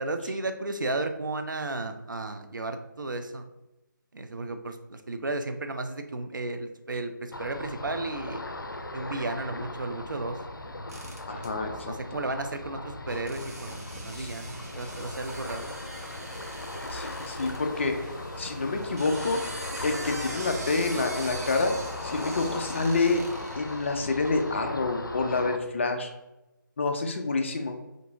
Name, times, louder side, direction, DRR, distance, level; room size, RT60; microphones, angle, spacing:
voice 1, 0.0-3.5 4.1-8.4 8.9-10.4 11.3-11.4 11.8-15.7, right 2 dB, 70° right, 7 dB, 0.5 m, -34 dB
Ocean, 7.3-25.6, left 2 dB, 90° left, 0.5 m, -38 dB
sound 1, 10.9-11.5 13.3-17.6 18.8-24.6, right 2 dB, 50° right, 0.8 m, -42 dB
voice 2, 11.3-12.2 14.1-14.3 16.9-18.0 18.4-19.4 19.8-21.8 22.0-23.2 23.6-26.1 26.8-27.7, left 3 dB, 35° left, 5 dB, 0.4 m, -28 dB
sound 2, 13.1-23.2, equal, 15° right, 0.8 m, -47 dB
3.9 x 2.7 x 3.4 m, 0.97 s
figure-of-eight pair, 155°, 11 cm